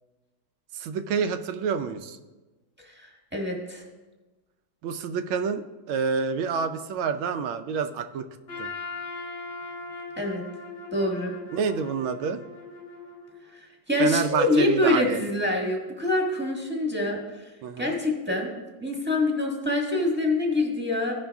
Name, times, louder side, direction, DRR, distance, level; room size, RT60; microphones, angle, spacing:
voice 1, 0.7-2.2 4.8-8.3 8.6-8.7 11.5-12.4 14.0-15.2 17.6-17.9, right 6 dB, 85° right, 9 dB, 1.5 m, -28 dB
voice 2, 3.3-3.8 10.2-10.4 10.9-11.3 13.9-17.2 17.8-21.1, left 2 dB, 5° right, -1 dB, 1.2 m, -25 dB
Trumpet, 8.5-13.6, left 3 dB, 50° left, 0.6 m, -39 dB
15.0 x 5.6 x 3.4 m, 1.2 s
omnidirectional pair, 2.2 m